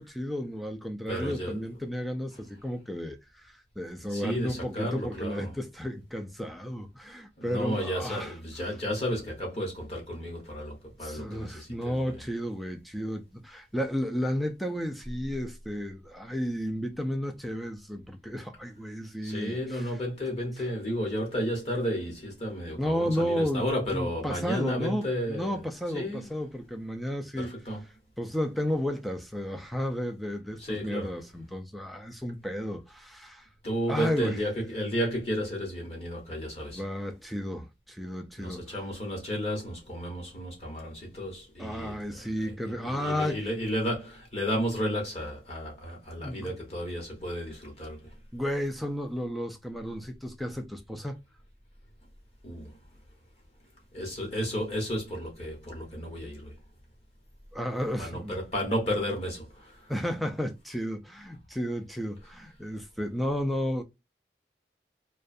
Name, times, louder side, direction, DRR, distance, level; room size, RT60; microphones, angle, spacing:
voice 1, 0.0-8.3 11.0-19.9 22.8-27.5 28.2-33.5 33.9-34.4 36.7-38.7 41.6-43.4 46.2-46.5 48.3-51.2 57.5-58.3 59.9-63.8, equal, ahead, 0.3 m, -33 dB
voice 2, 1.1-1.6 4.1-5.5 7.4-12.2 19.2-25.6 25.9-26.3 27.4-27.8 30.6-31.1 33.6-36.8 38.4-48.0 52.4-52.7 53.9-56.5 58.0-59.7, equal, 35° left, 1.0 m, -33 dB
2.4 x 2.2 x 2.5 m
head